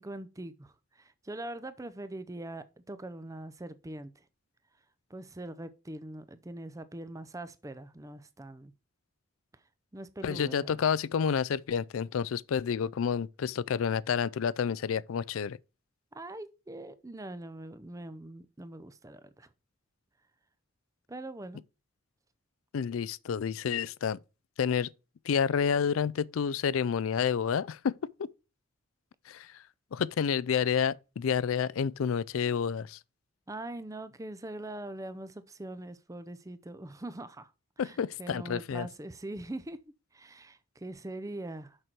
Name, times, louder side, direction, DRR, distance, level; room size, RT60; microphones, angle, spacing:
voice 1, 0.0-4.1 5.1-8.7 9.9-10.8 16.1-19.5 21.1-21.6 33.5-37.5 37.8-39.8 40.1-41.8, right 1 dB, 15° right, 0.5 m, -42 dB
voice 2, 10.2-15.6 22.7-24.2 24.6-24.9 25.2-27.9 28.2-28.3 29.3-29.6 29.9-33.0 37.8-38.9, left 7 dB, 80° left, 0.4 m, -29 dB
6.4 x 6.0 x 4.4 m
head